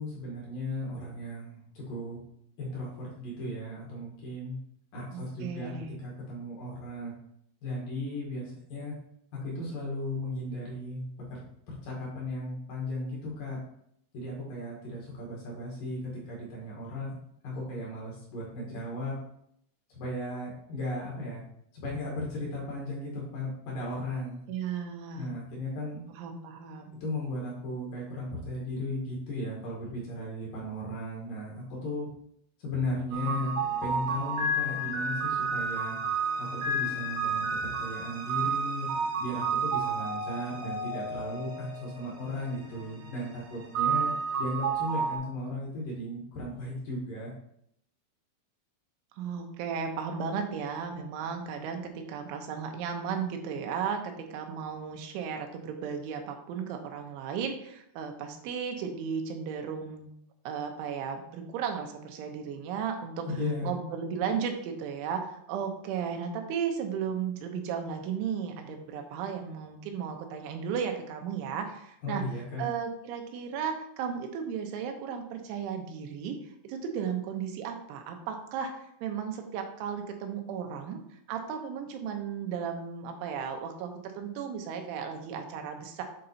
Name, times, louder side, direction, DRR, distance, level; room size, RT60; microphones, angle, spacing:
voice 1, 0.0-2.2 2.6-4.6 4.9-5.7 6.0-7.1 7.6-9.0 9.4-11.4 11.7-13.6 14.1-17.1 17.4-19.2 19.9-21.4 21.7-24.4 25.2-26.0 27.0-32.1 32.6-36.0 36.4-38.9 39.2-44.1 44.4-47.3 63.4-63.8 72.0-72.7, left 1 dB, 60° left, -4 dB, 2.7 m, -36 dB
voice 2, 5.1-6.0 24.5-25.3 26.1-26.9 49.2-60.1 60.5-63.3 63.6-72.2 72.6-81.0 81.3-86.0, right 7 dB, 90° right, 4 dB, 3.3 m, -35 dB
sound 1, 33.1-45.2, right 3 dB, 70° right, 2.0 m, -31 dB
8.2 x 3.8 x 4.2 m, 0.72 s
omnidirectional pair, 5.3 m